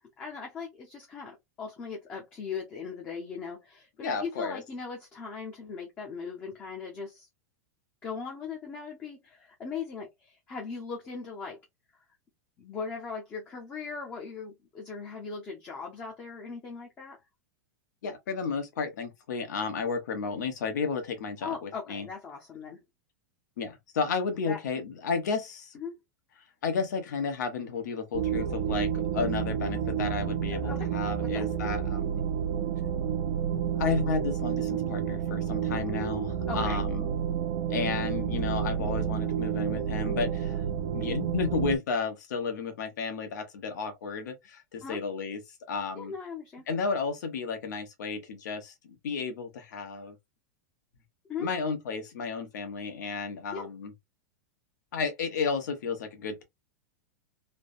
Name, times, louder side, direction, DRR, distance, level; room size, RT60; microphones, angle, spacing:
voice 1, 0.2-7.3 8.0-11.6 12.6-17.2 21.4-22.8 24.5-24.6 25.7-26.0 30.5-30.9 31.3-31.5 36.5-36.8 44.8-45.0 46.0-46.7 51.3-51.5 53.5-53.7, left 5 dB, 15° left, 0.6 m, -39 dB
voice 2, 4.0-4.6 18.0-22.1 23.6-25.8 26.6-32.2 33.8-37.1 37.7-40.6 40.9-45.4 45.7-46.1 46.7-50.2 51.4-53.9 54.9-56.4, left 5 dB, 85° left, 1.1 m, -32 dB
sound 1, 28.1-41.8, right 8 dB, 50° right, 0.6 m, -30 dB
3.3 x 2.1 x 2.5 m
supercardioid pair, 170°, 9 cm